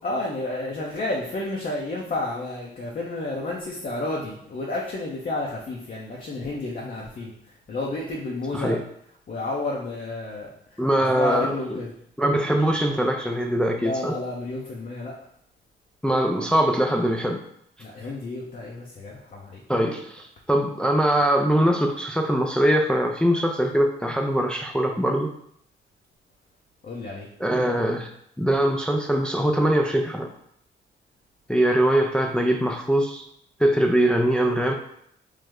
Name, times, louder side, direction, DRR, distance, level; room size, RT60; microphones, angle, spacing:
voice 1, 0.0-8.8 9.3-11.9 13.8-15.1 17.8-19.6 26.8-27.3, left 2 dB, 45° left, -2 dB, 0.6 m, -31 dB
voice 2, 10.8-11.5 12.2-14.2 16.0-17.4 19.7-25.3 27.4-28.1 28.4-30.3 31.5-33.3 33.6-34.7, right 1 dB, 5° left, 2 dB, 0.3 m, -22 dB
3.2 x 2.0 x 3.5 m, 0.70 s
cardioid pair, 70°, 20 cm